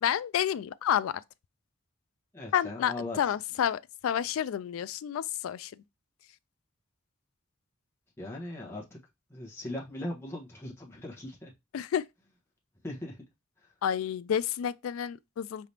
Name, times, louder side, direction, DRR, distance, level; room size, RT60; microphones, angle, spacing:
voice 1, 0.0-1.1 2.5-5.7 11.7-12.0 13.8-15.7, left 9 dB, 90° left, 0.3 m, -30 dB
voice 2, 2.3-3.2 8.2-9.0 9.3-11.5 12.8-13.2 13.6-13.7, left 1 dB, 10° left, 1.2 m, -39 dB
4.8 x 3.4 x 2.8 m
head